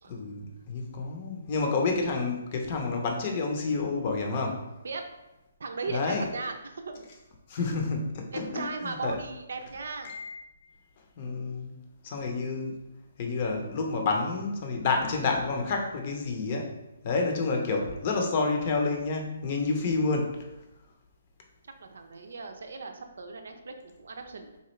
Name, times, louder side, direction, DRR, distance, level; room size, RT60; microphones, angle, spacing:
voice 1, 0.0-4.7 5.9-6.3 7.5-9.2 10.0-10.4 11.2-11.7 12.0-12.8 13.2-16.8 17.0-20.5, left 3 dB, 40° left, 2 dB, 0.7 m, -29 dB
voice 2, 5.6-6.5 6.9-7.1 8.3-10.1 21.6-24.6, right 4 dB, 75° right, 6 dB, 0.5 m, -37 dB
4.1 x 2.4 x 3.1 m, 0.94 s
hypercardioid pair, 145°, 0 cm